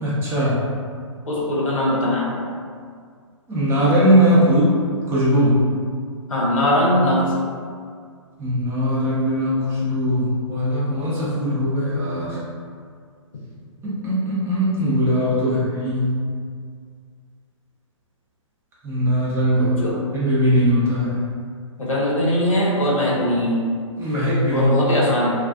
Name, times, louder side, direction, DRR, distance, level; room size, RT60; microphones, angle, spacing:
voice 1, 0.0-0.6 3.5-4.7 5.1-5.6 8.4-12.4 13.8-16.1 18.8-19.7 20.1-21.2 24.0-24.7, equal, 15° right, -8 dB, 0.6 m, -20 dB
voice 2, 1.3-2.3 6.3-7.3 15.4-15.6 19.6-20.0 21.8-23.6 24.5-25.3, left 1 dB, 80° left, -5 dB, 0.8 m, -20 dB
2.3 x 2.3 x 2.3 m, 2.1 s
hypercardioid pair, 130°, 17 cm